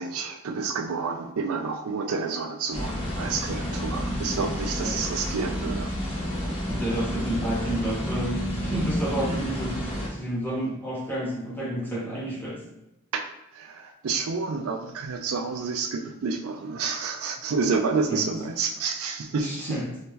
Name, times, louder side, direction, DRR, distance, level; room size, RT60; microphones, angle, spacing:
voice 1, 0.0-5.9 9.2-9.5 13.1-13.2 13.5-19.8, right 4 dB, 70° right, 5 dB, 0.4 m, -29 dB
sound 1, 2.7-10.1, equal, 25° left, 0.8 m, -30 dB
voice 2, 6.6-9.8 10.1-12.6 18.1-18.3 19.4-19.9, right 1 dB, 10° left, -6 dB, 1.1 m, -30 dB
3.1 x 2.8 x 3.6 m, 0.93 s
head